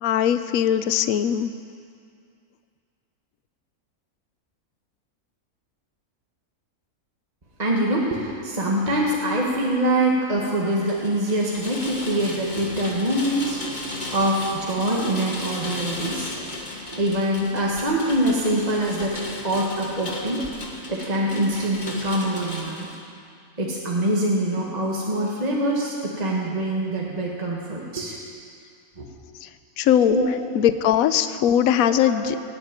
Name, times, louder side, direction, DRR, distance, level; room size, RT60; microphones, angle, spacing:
voice 1, 0.0-1.5 29.8-30.2 30.5-32.5, left 10 dB, 75° left, 12 dB, 1.1 m, -20 dB
voice 2, 7.6-13.6 14.1-16.3 16.9-19.2 19.4-20.5 20.9-22.9 23.6-28.2 29.0-29.1 30.1-30.3 31.9-32.3, right 1 dB, 25° right, -3 dB, 1.8 m, -24 dB
Rain, 10.6-23.0, left 2 dB, 30° left, 1.7 m, -35 dB
17.5 x 8.8 x 9.1 m, 2.3 s
omnidirectional pair, 1.6 m